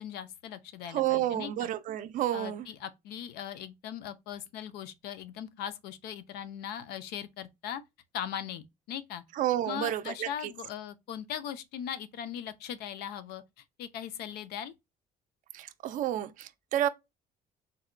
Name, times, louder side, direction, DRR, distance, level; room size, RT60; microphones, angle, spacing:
voice 1, 0.0-1.7 2.3-7.8 8.1-9.2 9.6-14.7, left 9 dB, 80° left, 0.5 m, -39 dB
voice 2, 0.9-2.7 9.4-10.3 15.5-16.9, right 12 dB, 55° right, 0.4 m, -30 dB
4.0 x 2.1 x 2.4 m
cardioid pair, 155°, 16 cm